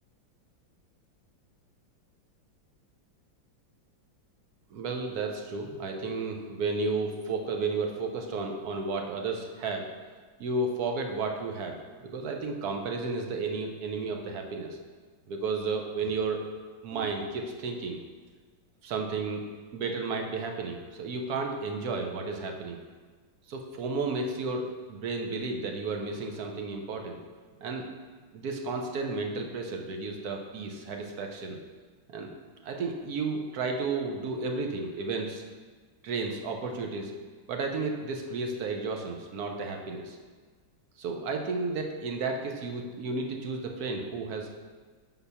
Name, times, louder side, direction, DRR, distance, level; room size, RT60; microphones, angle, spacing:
voice 1, 4.7-9.9 10.4-14.8 15.3-16.4 16.8-18.0 18.8-19.4 19.7-22.8 23.5-27.2 27.6-27.9 28.3-31.6 32.1-32.3 32.6-35.4 36.0-37.1 37.5-40.2 41.0-44.5, right 3 dB, 65° right, 3 dB, 1.0 m, -32 dB
5.7 x 4.0 x 5.5 m, 1.5 s
omnidirectional pair, 2.1 m